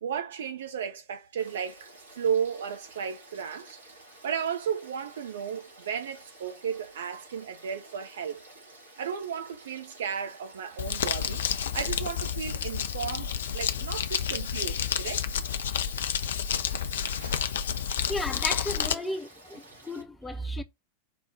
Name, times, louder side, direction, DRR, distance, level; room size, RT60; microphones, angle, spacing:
voice 1, 0.0-3.8 4.2-8.4 9.0-11.4 11.7-15.2 17.0-18.3, right 7 dB, 65° right, 0.7 m, -34 dB
Frog / Stream, 1.4-20.0, right 2 dB, 80° right, 2.0 m, -52 dB
Crumpling crinkling, 10.8-18.9, left 8 dB, 65° left, 0.4 m, -30 dB
voice 2, 18.1-20.6, left 1 dB, 10° left, 0.7 m, -34 dB
4.8 x 2.2 x 4.8 m
figure-of-eight pair, 90°, 0 cm